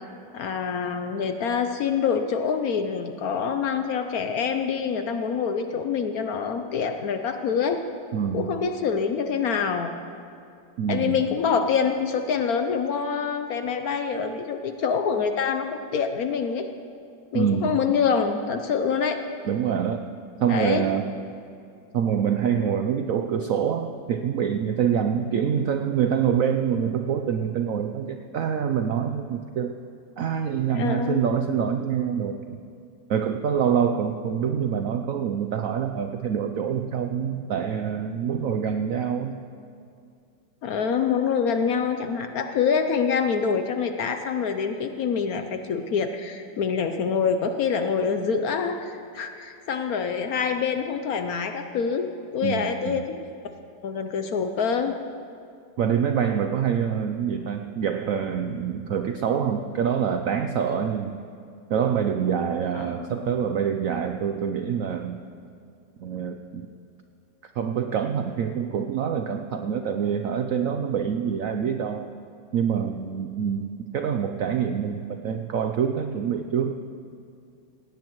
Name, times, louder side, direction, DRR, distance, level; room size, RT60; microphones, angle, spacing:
voice 1, 0.3-7.8 8.3-10.0 10.9-16.7 17.3-19.2 20.5-20.9 30.7-31.2 40.6-53.2 53.8-55.0 62.7-63.3, left 6 dB, 65° left, 7 dB, 1.0 m, -26 dB
voice 2, 8.1-8.5 10.8-11.2 17.3-17.8 19.4-20.0 20.4-21.1 21.9-29.7 30.2-32.6 33.1-39.4 52.4-53.0 55.8-61.2 61.7-65.2 66.0-66.7 67.4-72.1 72.5-76.7, right 8 dB, 75° right, 6 dB, 0.7 m, -26 dB
17.5 x 17.0 x 3.1 m, 2.5 s
omnidirectional pair, 2.0 m